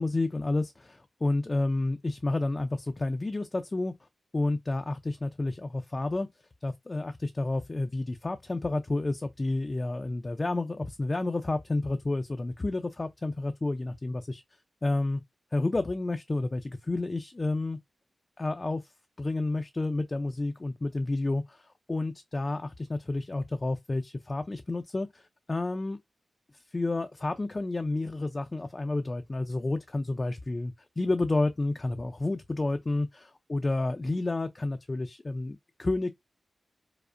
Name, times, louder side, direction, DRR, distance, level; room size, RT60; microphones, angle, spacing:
voice 1, 0.0-3.9 4.3-6.3 6.6-14.4 14.8-15.2 15.5-17.8 18.4-18.9 19.2-21.6 21.9-26.0 26.7-36.1, left 2 dB, 30° left, 0.4 m, -30 dB
4.8 x 2.1 x 2.5 m
cardioid pair, 70°, 0 cm